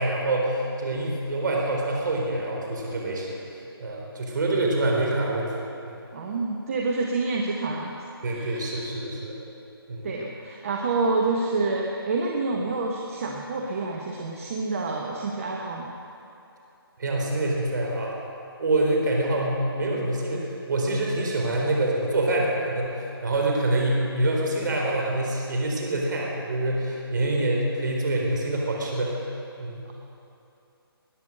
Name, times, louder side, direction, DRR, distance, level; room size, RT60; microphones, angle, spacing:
voice 1, 0.0-3.4 3.8-5.5 5.8-6.0 8.2-9.4 9.9-10.1 17.0-18.1 18.6-29.2 29.6-29.8, right 2 dB, 50° right, -1 dB, 4.2 m, -26 dB
voice 2, 6.1-7.9 8.3-8.8 10.0-15.9, right 3 dB, 35° right, -1 dB, 1.2 m, -28 dB
20.0 x 9.4 x 6.6 m, 2.8 s
hypercardioid pair, 165°, 13 cm